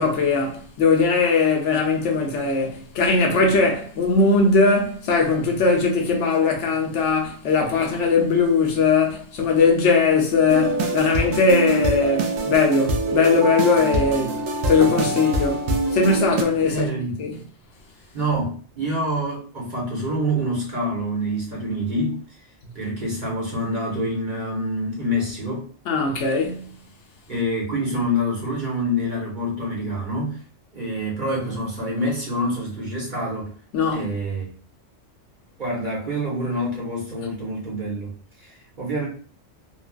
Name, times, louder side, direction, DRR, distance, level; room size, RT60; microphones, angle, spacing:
voice 1, 0.0-16.9 17.2-17.3 25.9-26.7 33.7-34.1, left 4 dB, 70° left, 0.9 m, -20 dB
sound 1, 10.5-16.4, right 2 dB, 85° right, 1.0 m, -24 dB
voice 2, 16.6-17.2 18.1-22.4 22.7-25.7 27.3-30.4 30.7-33.5 33.9-34.5 35.6-38.1 38.4-39.1, equal, 40° right, 1.1 m, -26 dB
3.2 x 2.2 x 2.3 m
omnidirectional pair, 1.3 m